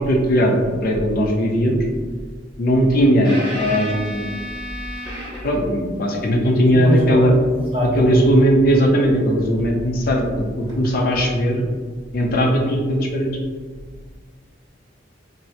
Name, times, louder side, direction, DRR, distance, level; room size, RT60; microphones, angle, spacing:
voice 1, 0.0-1.8 2.6-4.4 5.4-7.3 8.0-11.6 12.1-13.3, equal, 50° left, 0 dB, 0.5 m, -18 dB
sound 1, 3.2-5.7 8.7-8.9 10.7-10.8, equal, 25° left, 1.0 m, -32 dB
voice 2, 6.5-8.2, equal, 30° right, -5 dB, 0.9 m, -24 dB
4.3 x 2.0 x 2.6 m, 1.5 s
head